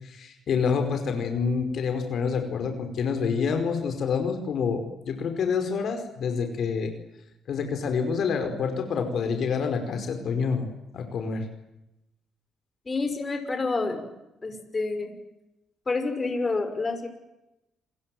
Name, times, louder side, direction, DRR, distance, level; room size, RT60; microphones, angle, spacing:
voice 1, 0.0-6.9 7.5-10.7 10.9-11.4, left 5 dB, 65° left, 6 dB, 5.0 m, -27 dB
voice 2, 12.9-14.1 14.4-15.1 15.9-17.1, left 3 dB, 30° left, 6 dB, 5.9 m, -28 dB
30.0 x 21.5 x 7.9 m, 0.90 s
cardioid pair, 90°, 0 cm